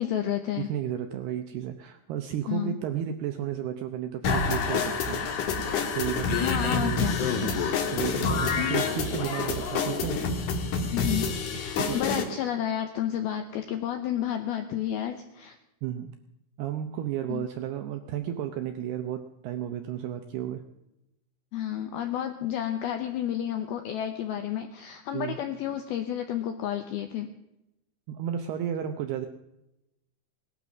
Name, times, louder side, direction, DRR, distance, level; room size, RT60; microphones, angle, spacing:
voice 1, 0.0-0.7 2.5-2.8 6.4-7.2 8.5-8.8 10.9-15.6 17.3-17.5 21.5-27.3, left 10 dB, 80° left, 7 dB, 2.2 m, -31 dB
voice 2, 0.6-5.2 5.9-7.3 7.6-10.6 11.7-12.0 15.8-16.1 16.6-20.6 25.1-25.4 28.1-29.3, right 10 dB, 80° right, 7 dB, 2.3 m, -33 dB
sound 1, 4.2-12.2, left 5 dB, 55° left, 2.4 m, -28 dB
19.0 x 12.0 x 6.1 m, 0.91 s
omnidirectional pair, 5.6 m